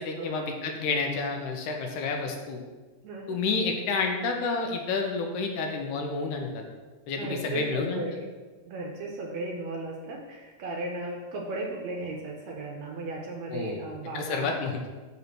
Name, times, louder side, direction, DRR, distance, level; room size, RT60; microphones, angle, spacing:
voice 1, 0.0-2.6 3.3-6.6 7.1-8.0 13.5-13.8 14.1-14.8, left 4 dB, 80° left, 3 dB, 2.2 m, -29 dB
voice 2, 3.0-3.4 7.2-8.2 8.7-14.5, right 2 dB, 75° right, 0 dB, 1.7 m, -36 dB
5.3 x 4.1 x 6.0 m, 1.3 s
omnidirectional pair, 3.6 m